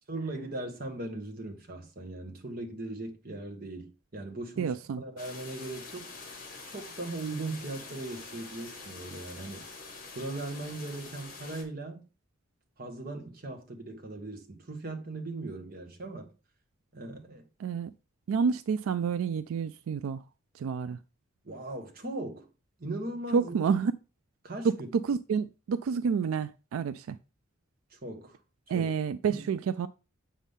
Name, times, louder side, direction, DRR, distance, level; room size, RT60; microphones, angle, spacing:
voice 1, 0.1-6.1 6.7-9.7 10.1-12.0 12.8-16.3 16.9-17.5 21.4-22.5 22.8-23.5 24.4-24.7 27.9-28.4 28.7-28.9 29.3-29.5, right 2 dB, 45° right, 1.4 m, -39 dB
voice 2, 4.6-5.0 17.6-17.9 18.3-20.2 20.5-21.0 23.3-23.9 24.6-27.2 28.7-29.9, right 6 dB, 90° right, 0.3 m, -29 dB
sound 1, 5.2-11.6, left 4 dB, 45° left, 1.9 m, -45 dB
7.2 x 5.6 x 3.6 m
head